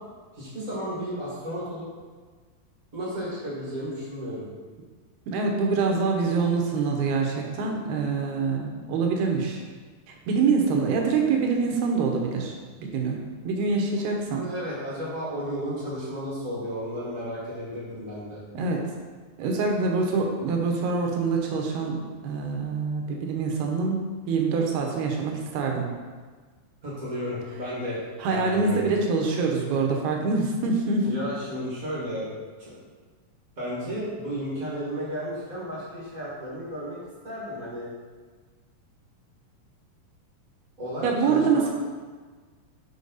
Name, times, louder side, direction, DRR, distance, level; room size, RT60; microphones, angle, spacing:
voice 1, 0.3-1.8 2.9-4.5 13.8-18.4 26.8-28.9 31.0-32.3 32.6-32.8 33.6-37.0 37.2-37.9 40.8-41.7, equal, 35° right, -7 dB, 1.3 m, -33 dB
voice 2, 5.3-9.6 10.1-13.2 13.4-14.5 18.5-18.8 19.4-22.0 22.2-25.9 28.2-31.1 41.0-41.7, right 4 dB, 80° right, 1 dB, 3.0 m, -25 dB
6.9 x 5.7 x 4.1 m, 1.4 s
omnidirectional pair, 4.5 m